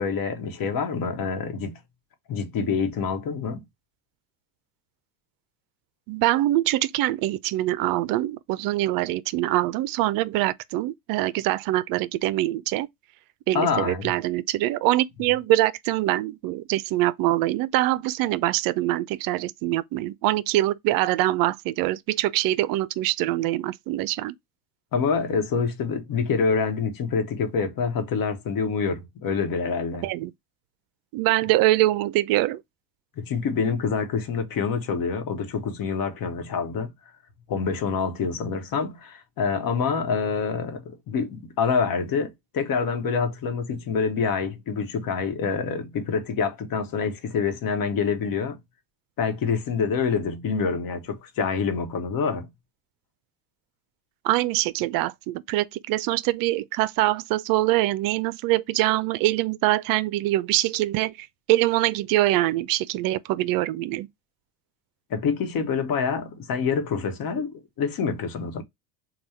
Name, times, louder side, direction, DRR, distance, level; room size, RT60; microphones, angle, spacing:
voice 1, 0.0-1.8 2.3-3.6 13.5-14.1 24.9-30.1 33.2-36.9 37.5-48.6 49.2-52.5 65.1-68.6, left 5 dB, 50° left, 1.1 m, -26 dB
voice 2, 6.1-12.9 13.5-24.3 30.0-30.3 31.1-32.6 54.2-64.1, right 16 dB, 50° right, 0.5 m, -24 dB
3.4 x 2.3 x 4.1 m
supercardioid pair, 90°, 46 cm